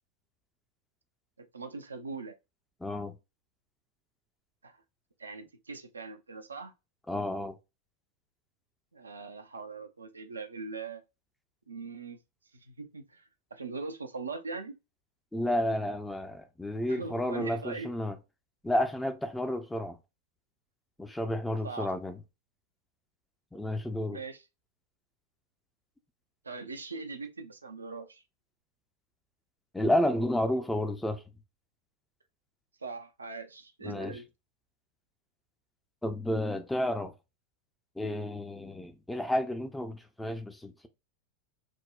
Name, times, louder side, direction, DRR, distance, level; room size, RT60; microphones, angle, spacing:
voice 1, 1.4-2.4 4.6-4.8 5.2-6.7 8.9-11.0 11.7-12.2 12.5-14.7 16.9-17.9 21.6-21.9 24.1-24.5 26.4-28.2 32.8-34.3, right 4 dB, 75° right, 0.5 m, -41 dB
voice 2, 2.8-3.1 7.1-7.5 15.3-18.2 18.6-20.0 21.0-22.2 23.5-24.2 29.7-31.2 33.8-34.1 36.0-37.1 38.0-40.9, left 1 dB, 5° left, 0.4 m, -31 dB
6.0 x 2.1 x 2.3 m
figure-of-eight pair, 90°, 0 cm